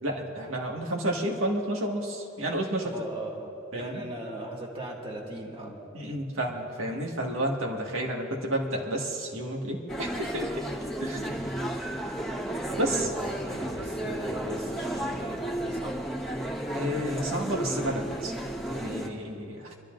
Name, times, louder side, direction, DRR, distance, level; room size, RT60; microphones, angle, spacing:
voice 1, 0.0-2.9 3.7-4.0 5.9-10.6 11.0-11.4 12.8-13.1 16.7-18.3 18.7-19.7, right 1 dB, 80° right, 0 dB, 1.9 m, -31 dB
voice 2, 2.9-5.8 11.2-11.5 12.7-16.0, right 1 dB, 30° right, -1 dB, 2.0 m, -38 dB
sound 1, 9.9-19.1, right 1 dB, 5° left, 1.5 m, -33 dB
26.5 x 12.5 x 2.6 m, 2.7 s
head